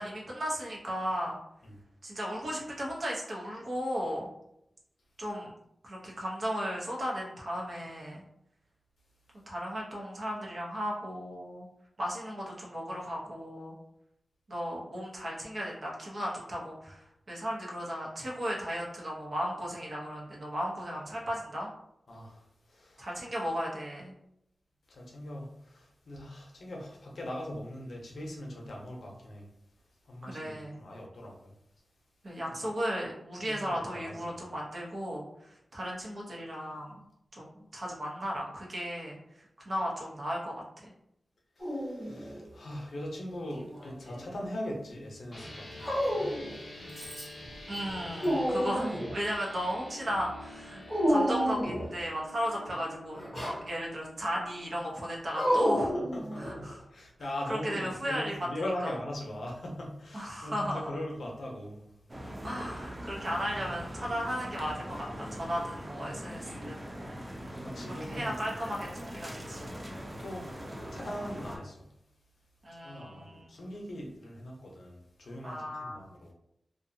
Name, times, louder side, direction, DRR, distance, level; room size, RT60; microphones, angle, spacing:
voice 1, 0.0-1.4 2.0-4.3 5.2-5.5 5.8-8.2 9.5-11.7 12.0-13.8 14.5-21.7 23.0-24.1 30.2-30.8 32.2-37.0 37.3-39.2 39.7-40.9 47.7-56.0 56.4-56.8 57.5-58.5 60.1-60.9 62.4-66.8 67.9-69.6 72.6-73.5 75.4-76.1, equal, 50° right, -3 dB, 0.8 m, -35 dB
voice 2, 22.1-23.1 24.9-29.4 30.0-31.5 32.6-32.7 33.4-34.5 41.6-46.4 55.9-61.9 67.5-68.4 70.0-71.9 72.7-76.3, left 1 dB, 80° left, -1 dB, 0.6 m, -41 dB
Dog, 41.6-42.4 43.5-44.4 45.8-46.6 47.0-47.5 47.8-49.2 50.9-52.0 53.1-53.6 55.3-56.7, equal, 5° left, 1.0 m, -30 dB
sound 1, 45.3-54.8, left 1 dB, 35° left, 0.6 m, -47 dB
sound 2, 62.1-71.6, equal, 25° right, 0.4 m, -41 dB
2.6 x 2.3 x 2.6 m, 0.78 s
wide cardioid pair, 130°, 0 cm